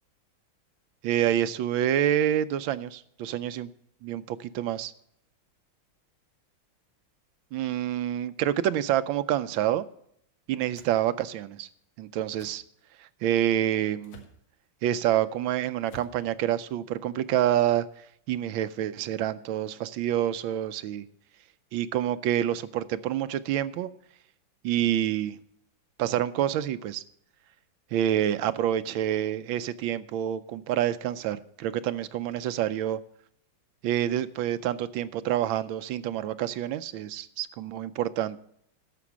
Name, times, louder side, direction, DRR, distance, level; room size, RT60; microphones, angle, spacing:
voice 1, 1.0-3.7 4.0-4.9 7.5-9.9 10.5-11.7 12.0-12.6 13.2-14.2 14.8-17.9 18.3-21.1 21.7-23.9 24.6-25.4 26.0-27.0 27.9-33.0 33.8-38.4, right 11 dB, 80° right, 1.3 m, -27 dB
sound 1, 10.7-11.0 12.4-12.6 14.0-14.4 15.8-16.2, equal, 80° left, 2.2 m, -48 dB
11.0 x 6.8 x 7.1 m
omnidirectional pair, 2.2 m